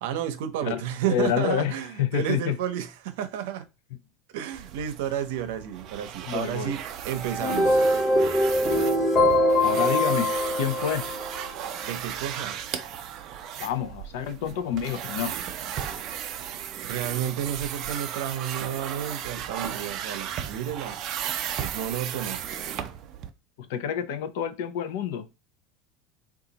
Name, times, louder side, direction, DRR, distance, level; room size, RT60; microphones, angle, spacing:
voice 1, 0.0-3.6 4.3-7.8 11.8-12.6 16.8-21.0 21.6-22.4, right 10 dB, 80° right, 0.6 m, -31 dB
voice 2, 1.1-2.6 6.3-6.7 9.6-11.1 13.6-15.4 23.6-25.3, left 9 dB, 80° left, 0.5 m, -28 dB
sound 1, 4.5-23.3, right 9 dB, 40° right, 0.4 m, -35 dB
sound 2, 7.2-11.5, left 1 dB, 20° left, 1.0 m, -23 dB
3.9 x 2.4 x 2.8 m
cardioid pair, 170°, 0 cm